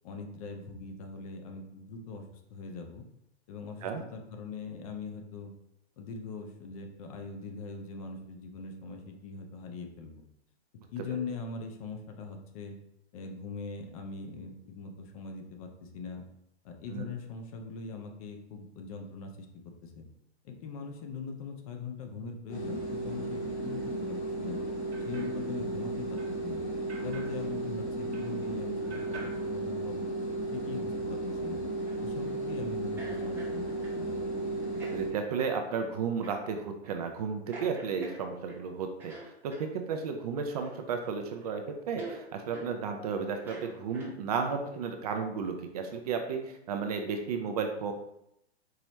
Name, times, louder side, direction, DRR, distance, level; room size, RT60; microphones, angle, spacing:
voice 1, 0.0-3.0 3.5-5.5 6.0-10.2 10.9-12.8 13.1-16.2 16.6-19.5 19.8-20.0 20.4-24.6 25.0-26.6 27.0-30.1 30.5-31.6 32.0-33.6 33.9-34.2, left 4 dB, 35° left, 4 dB, 0.6 m, -41 dB
sound 1, 22.5-35.1, right 1 dB, 90° left, 1.0 m, -34 dB
sound 2, 24.5-28.6 28.9-30.4, right 3 dB, 75° right, 1.2 m, -51 dB
sound 3, 31.8-32.3 33.0-34.0 34.7-35.0 35.4-35.6 36.2-36.4 36.8-37.0 37.5-38.6 39.0-39.7 40.6-41.1 41.4-41.5 42.0-42.2 42.5-42.7 43.3-44.4, right 2 dB, 5° right, 0.9 m, -46 dB
voice 2, 34.9-47.9, right 5 dB, 35° right, 5 dB, 0.4 m, -33 dB
4.7 x 3.0 x 3.0 m, 0.79 s
figure-of-eight pair, 110°, 33 cm